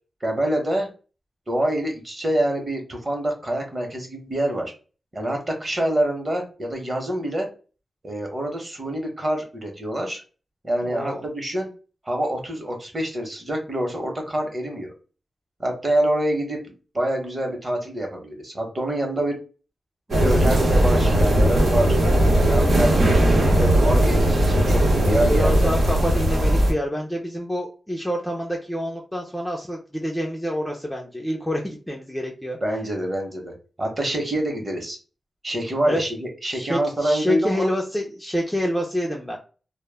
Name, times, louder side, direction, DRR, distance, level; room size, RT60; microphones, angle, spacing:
voice 1, 0.2-0.9 1.5-4.7 5.1-7.5 8.0-10.2 10.6-11.7 12.0-14.9 15.6-19.4 20.1-21.9 22.4-25.7 32.6-33.5 33.8-35.0 35.4-37.7, right 1 dB, 30° right, 2 dB, 0.8 m, -26 dB
voice 2, 10.8-11.3 25.3-32.6 35.9-36.0 36.5-39.4, equal, 5° left, 0 dB, 0.4 m, -27 dB
sound 1, 20.1-26.7, right 1 dB, 85° right, 0.8 m, -18 dB
2.1 x 2.1 x 3.2 m, 0.36 s
wide cardioid pair, 140°, 0 cm